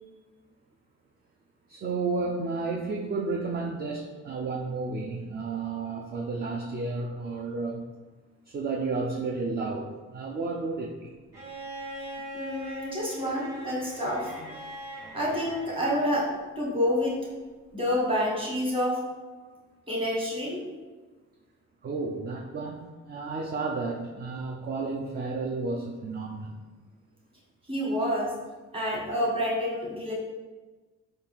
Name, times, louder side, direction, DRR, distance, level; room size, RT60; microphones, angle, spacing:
voice 1, 1.7-7.9 8.5-11.1 19.4-19.5 21.8-26.6, right 3 dB, 35° right, 1 dB, 0.4 m, -32 dB
Bowed string instrument, 11.3-16.4 17.8-17.9, right 1 dB, 55° right, 1.4 m, -41 dB
voice 2, 12.3-14.3 15.1-17.2 17.7-19.0 19.9-20.6 27.7-28.4 28.7-30.1, equal, 20° right, -4 dB, 1.4 m, -28 dB
4.2 x 2.4 x 3.5 m, 1.3 s
cardioid pair, 90°, 30 cm